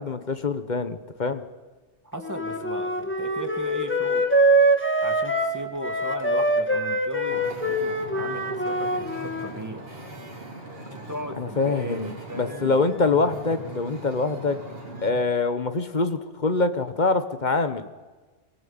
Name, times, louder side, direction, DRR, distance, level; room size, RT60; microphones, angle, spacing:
voice 1, 0.0-1.4 11.4-14.6 15.0-17.9, left 3 dB, 40° left, 10 dB, 1.3 m, -25 dB
voice 2, 2.0-4.3 5.0-9.9 10.9-12.8, right 1 dB, 15° right, 6 dB, 2.1 m, -37 dB
Wind instrument woodwind instrument, 2.2-9.5, right 1 dB, 10° left, 2.1 m, -24 dB
Wind / Ocean, 7.3-15.2, right 1 dB, 55° right, 3.8 m, -40 dB
23.5 x 18.5 x 8.8 m, 1.3 s
omnidirectional pair, 1.2 m